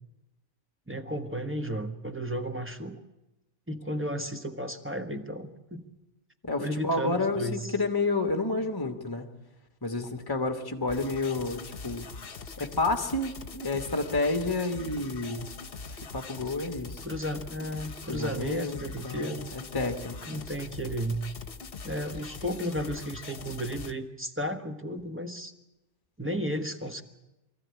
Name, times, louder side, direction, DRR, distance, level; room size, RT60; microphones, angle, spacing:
voice 1, 0.9-3.0 3.7-5.8 6.6-7.7 17.0-19.5 20.3-21.2 21.8-25.5 26.2-27.0, equal, 10° right, 6 dB, 1.3 m, -33 dB
voice 2, 6.5-9.3 9.8-12.1 12.6-15.5 16.1-17.0 18.1-19.3 19.7-20.2, left 2 dB, 20° left, 6 dB, 1.7 m, -30 dB
sound 1, 10.9-23.9, left 4 dB, 55° left, 1.3 m, -42 dB
24.0 x 14.5 x 9.7 m, 0.97 s
omnidirectional pair, 1.2 m